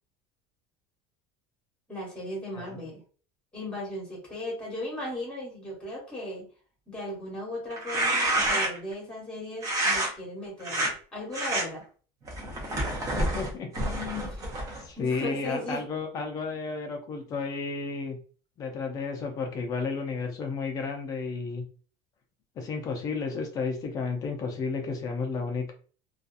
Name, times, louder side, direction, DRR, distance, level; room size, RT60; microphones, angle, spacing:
voice 1, 1.9-3.0 3.5-6.5 6.9-10.8 11.1-11.9 14.1-14.4 14.7-15.8, left 1 dB, 5° left, -3 dB, 1.1 m, -37 dB
voice 2, 2.5-2.9 13.2-14.3 14.8-18.2 18.6-21.6 22.6-25.7, left 4 dB, 25° left, 3 dB, 0.4 m, -32 dB
sound 1, 7.7-8.9 9.6-10.1 10.6-10.9 11.3-11.6 12.3-14.8, right 1 dB, 20° right, 0.6 m, -28 dB
2.7 x 2.3 x 2.4 m, 0.40 s
cardioid pair, 175°, 15 cm